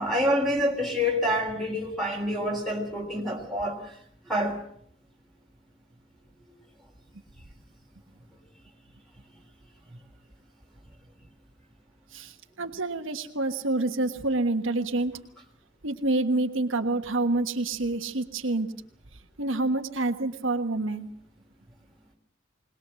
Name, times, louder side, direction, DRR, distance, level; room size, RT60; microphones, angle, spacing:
voice 1, 0.0-3.9 4.3-4.6, equal, ahead, 1 dB, 3.4 m, -27 dB
voice 2, 12.6-15.1 15.8-18.7 19.4-21.1, right 2 dB, 70° right, 6 dB, 1.4 m, -27 dB
21.5 x 20.0 x 7.6 m, 0.65 s
head